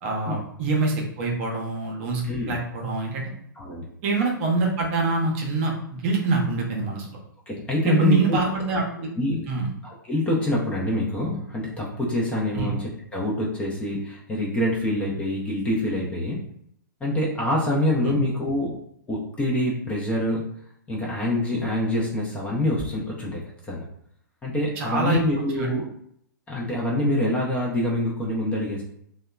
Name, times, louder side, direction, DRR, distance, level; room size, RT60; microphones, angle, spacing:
voice 1, 0.0-2.2 2.5-3.2 4.0-7.1 7.8-9.1 9.5-9.7 12.5-12.7 18.1-18.2 24.8-25.7, right 3 dB, 40° right, -1 dB, 0.7 m, -25 dB
voice 2, 2.2-2.6 3.6-3.9 7.5-8.4 9.2-9.4 9.8-16.4 17.0-18.8 19.1-20.4 20.9-23.9 24.4-25.8 26.5-28.8, left 1 dB, 10° left, -4 dB, 0.5 m, -25 dB
2.8 x 2.2 x 2.3 m, 0.69 s
figure-of-eight pair, 115°, 11 cm